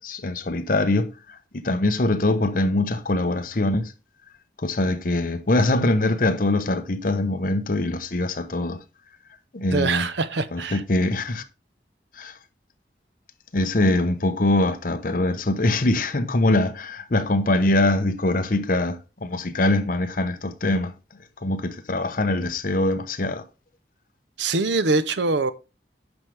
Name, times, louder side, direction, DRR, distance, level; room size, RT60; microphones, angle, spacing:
voice 1, 0.0-3.9 4.6-8.8 9.5-10.1 10.5-11.4 12.2-12.3 13.5-20.9 21.4-23.4, left 2 dB, 50° left, 0.9 m, -23 dB
voice 2, 9.7-10.8 24.4-25.5, right 3 dB, 80° right, 0.7 m, -23 dB
9.8 x 6.2 x 3.4 m
head